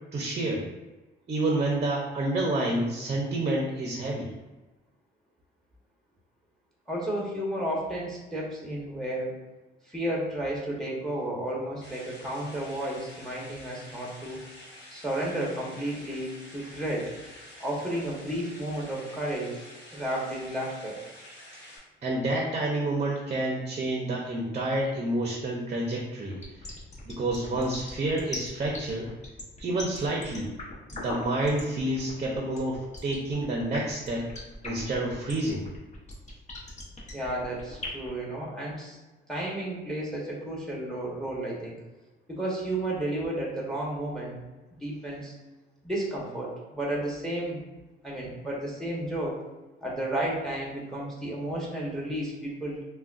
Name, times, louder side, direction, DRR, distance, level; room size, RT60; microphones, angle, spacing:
voice 1, 0.1-0.7 1.3-4.3 22.0-26.4 27.0-29.1 29.6-30.5 30.9-34.3 34.6-35.6, right 2 dB, 35° right, -2 dB, 0.6 m, -29 dB
voice 2, 6.9-9.4 9.9-14.4 14.9-17.1 17.6-19.6 19.9-21.0 37.1-39.0 39.3-41.7 42.3-44.4 44.8-45.3 45.8-47.6 48.0-49.4 49.8-52.8, right 1 dB, ahead, -4 dB, 0.9 m, -32 dB
sound 1, 11.8-21.8, left 1 dB, 60° left, 1.2 m, -48 dB
sound 2, 26.3-38.1, left 2 dB, 35° left, 0.8 m, -40 dB
3.6 x 2.2 x 2.4 m, 1.1 s
cardioid pair, 90°, 20 cm